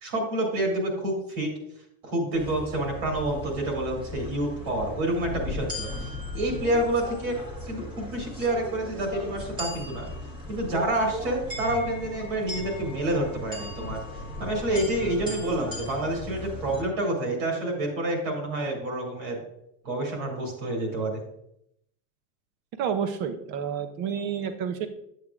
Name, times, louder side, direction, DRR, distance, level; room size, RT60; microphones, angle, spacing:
voice 1, 0.0-1.5 2.0-5.9 6.3-10.1 10.5-14.0 14.4-19.4 19.8-21.2, right 1 dB, 50° right, 0 dB, 2.7 m, -28 dB
sound 1, 2.3-16.8, left 2 dB, 10° right, 1.4 m, -37 dB
voice 2, 22.8-24.9, right 7 dB, 30° right, 10 dB, 0.5 m, -29 dB
9.6 x 8.1 x 2.4 m, 0.76 s
cardioid pair, 180°, 39 cm